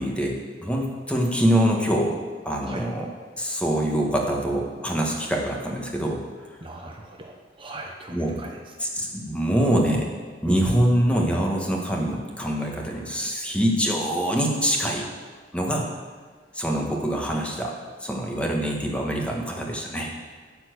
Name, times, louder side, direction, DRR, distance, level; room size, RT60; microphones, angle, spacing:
voice 1, 0.0-2.2 2.4-3.0 3.4-6.2 8.1-8.4 8.8-10.1 10.4-15.1 15.5-15.9 16.5-17.7 18.0-20.1, equal, 5° left, -1 dB, 1.5 m, -24 dB
voice 2, 6.6-8.9 10.4-10.6, right 1 dB, 30° right, 1 dB, 0.8 m, -37 dB
12.5 x 4.4 x 8.2 m, 1.5 s
head